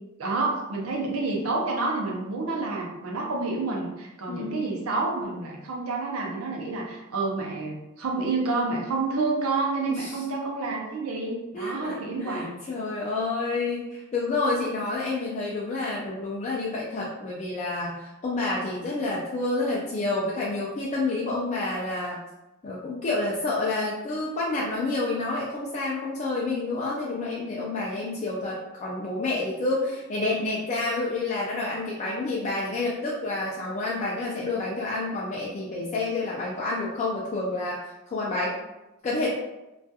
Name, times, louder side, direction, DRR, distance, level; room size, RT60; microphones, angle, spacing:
voice 1, 0.2-12.7, right 3 dB, 70° right, -1 dB, 0.6 m, -29 dB
voice 2, 4.3-4.7 9.9-10.2 11.5-22.2 22.6-38.6 39.0-39.3, left 2 dB, 30° left, -5 dB, 0.3 m, -29 dB
2.3 x 2.2 x 2.7 m, 0.98 s
head